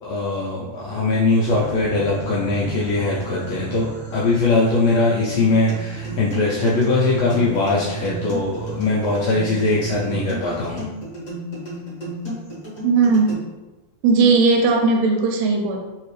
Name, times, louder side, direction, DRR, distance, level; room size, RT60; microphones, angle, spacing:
voice 1, 0.0-10.9, left 3 dB, 80° left, -5 dB, 1.5 m, -21 dB
sound 1, 1.4-10.2, right 3 dB, 35° right, 0.8 m, -33 dB
sound 2, 5.3-13.3, equal, 50° left, 1.0 m, -33 dB
voice 2, 12.8-13.4 14.0-15.8, right 4 dB, 80° right, 2 dB, 2.0 m, -17 dB
4.4 x 3.3 x 3.1 m, 1.1 s
omnidirectional pair, 3.6 m